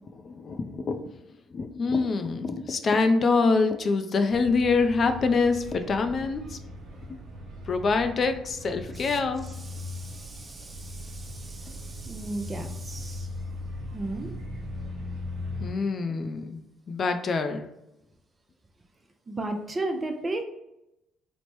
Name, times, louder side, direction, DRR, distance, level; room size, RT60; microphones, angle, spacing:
voice 1, 0.2-1.0 1.5-6.6 7.7-9.5 15.6-16.6 16.9-17.7, left 4 dB, 50° left, 7 dB, 0.3 m, -25 dB
sound 1, 4.3-15.7, left 1 dB, 60° right, 0.9 m, -39 dB
voice 2, 8.9-13.3 13.9-14.3 19.3-20.4, right 2 dB, 30° right, 5 dB, 0.4 m, -35 dB
3.1 x 2.0 x 3.0 m, 0.87 s
supercardioid pair, 60°, 0 cm